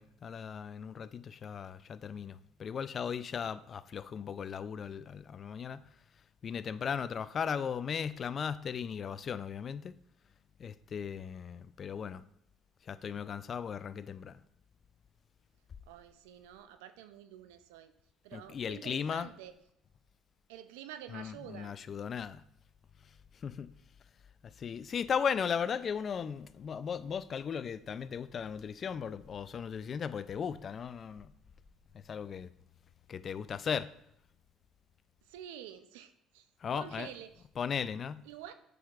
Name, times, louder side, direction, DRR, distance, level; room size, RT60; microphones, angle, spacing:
voice 1, 0.0-5.8 6.4-9.9 10.6-12.2 12.9-14.4 18.3-19.3 21.1-22.4 23.4-23.7 24.6-31.3 32.1-32.5 33.1-33.9 36.6-37.1 37.5-38.2, left 7 dB, 45° left, 15 dB, 0.3 m, -37 dB
voice 2, 15.9-17.9 18.2-19.5 20.5-21.8 35.3-36.5 36.7-37.4 38.2-38.5, right 11 dB, 85° right, 11 dB, 0.5 m, -48 dB
7.8 x 6.3 x 2.4 m, 0.75 s
supercardioid pair, 75°, 0 cm